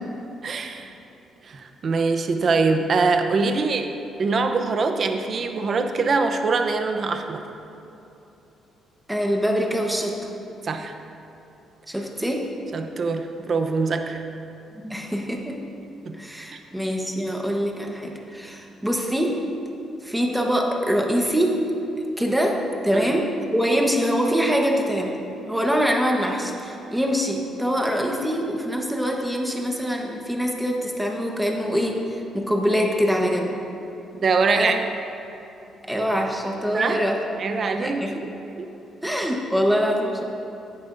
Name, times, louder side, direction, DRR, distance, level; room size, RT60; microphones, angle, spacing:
voice 1, 0.4-0.9 1.4-3.9 4.2-7.4 10.6-10.9 12.7-14.2 16.0-16.2 16.5-16.6 22.9-23.1 34.2-34.8 36.7-37.0 37.4-38.3 38.6-38.7, right 4 dB, 45° right, 6 dB, 0.7 m, -23 dB
voice 2, 9.1-10.1 11.9-12.4 14.8-15.6 16.2-19.4 20.0-21.6 22.2-22.6 22.8-25.2 25.5-33.6 34.5-34.8 35.9-37.2 37.8-38.1 39.0-40.2, equal, 5° right, 0 dB, 1.1 m, -24 dB
14.5 x 9.5 x 2.6 m, 2.9 s
cardioid pair, 120°, 0 cm